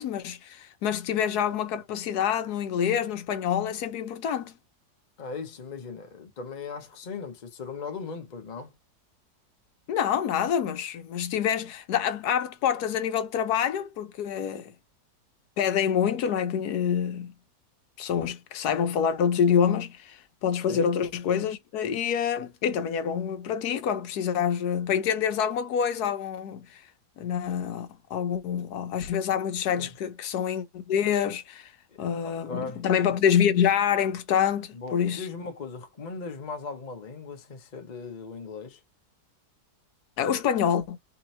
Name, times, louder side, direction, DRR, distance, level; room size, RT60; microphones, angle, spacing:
voice 1, 0.0-4.6 9.9-14.7 15.6-17.3 18.0-26.8 27.2-31.7 32.0-35.3 40.2-41.0, left 8 dB, 70° left, 1.2 m, -26 dB
voice 2, 5.2-8.7 20.7-20.9 29.8-29.9 31.9-33.2 34.7-38.8, left 4 dB, 40° left, 0.7 m, -38 dB
3.4 x 3.0 x 4.2 m
omnidirectional pair, 1.8 m